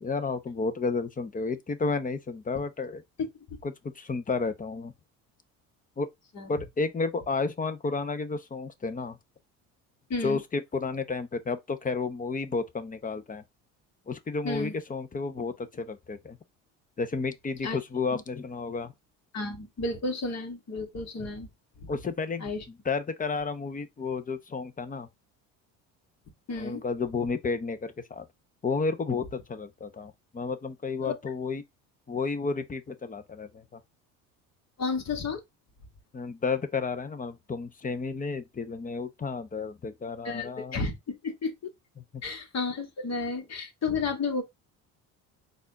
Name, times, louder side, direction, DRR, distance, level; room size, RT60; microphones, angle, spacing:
voice 1, 0.0-3.0 3.6-4.9 6.0-6.1 6.5-9.2 10.2-13.4 14.1-16.4 17.0-18.9 21.9-25.1 26.6-28.2 28.6-31.6 32.1-33.8 36.1-40.8 42.1-42.2, left 4 dB, 20° left, 0.8 m, -32 dB
voice 2, 10.1-10.4 14.4-14.7 17.6-17.8 18.1-18.2 19.3-21.5 21.8-21.9 22.4-22.6 26.5-26.8 31.0-31.1 34.8-35.4 40.2-41.5 42.2-44.4, left 3 dB, 45° left, 1.7 m, -32 dB
4.1 x 2.6 x 4.0 m
supercardioid pair, 75°, 37 cm